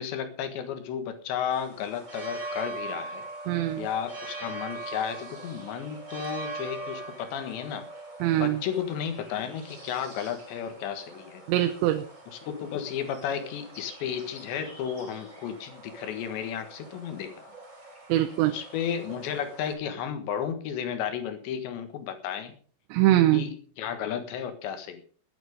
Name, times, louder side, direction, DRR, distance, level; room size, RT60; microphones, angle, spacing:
voice 1, 0.0-3.2 3.8-7.9 8.3-11.4 12.3-17.5 18.5-22.5 23.3-25.0, left 8 dB, 80° left, 9 dB, 3.9 m, -33 dB
sound 1, 1.5-19.7, right 2 dB, 10° right, 2.7 m, -42 dB
voice 2, 3.5-3.9 8.2-8.6 11.5-12.0 18.1-18.5 22.9-23.4, right 14 dB, 85° right, 8 dB, 3.1 m, -22 dB
19.5 x 9.1 x 5.3 m, 0.42 s
omnidirectional pair, 5.0 m